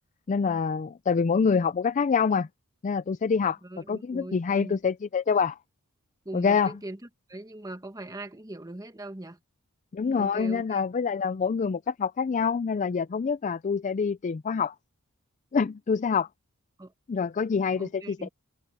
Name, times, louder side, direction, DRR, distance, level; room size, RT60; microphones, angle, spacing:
voice 1, 0.3-2.5 2.8-3.6 3.9-5.6 6.3-6.7 9.9-14.7 15.5-16.3 17.1-18.3, left 5 dB, 35° left, 0.3 m, -26 dB
voice 2, 3.6-4.8 6.2-7.0 7.3-9.4 10.1-10.8 16.8-16.9 17.8-18.3, right 1 dB, 15° right, 1.3 m, -40 dB
head